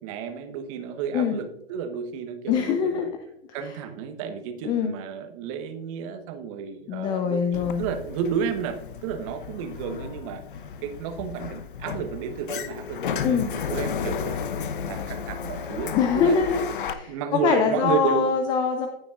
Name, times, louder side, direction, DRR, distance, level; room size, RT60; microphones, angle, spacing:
voice 1, 0.0-3.1 3.5-10.4 10.8-14.4 14.8-16.4 17.1-18.3, right 7 dB, 35° right, 8 dB, 1.1 m, -32 dB
voice 2, 2.5-3.1 4.6-5.0 6.9-7.8 13.2-13.5 15.9-18.9, left 6 dB, 15° left, 6 dB, 0.5 m, -23 dB
Sliding door, 7.5-16.9, left 7 dB, 60° left, 0.9 m, -33 dB
15.0 x 6.8 x 2.5 m, 0.84 s
figure-of-eight pair, 125°, 30 cm